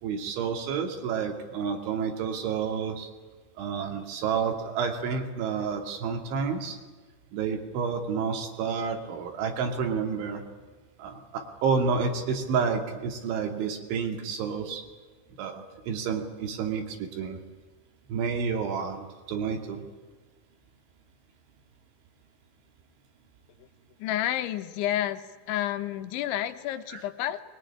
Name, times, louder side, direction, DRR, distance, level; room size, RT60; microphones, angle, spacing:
voice 1, 0.0-3.1 3.6-6.8 7.3-10.4 11.0-14.8 15.4-17.4 18.1-19.8 26.9-27.0, right 6 dB, 85° right, 4 dB, 5.1 m, -30 dB
voice 2, 24.0-25.2 25.5-27.4, left 12 dB, 85° left, 9 dB, 3.5 m, -30 dB
22.5 x 22.0 x 10.0 m, 1.4 s
omnidirectional pair, 5.2 m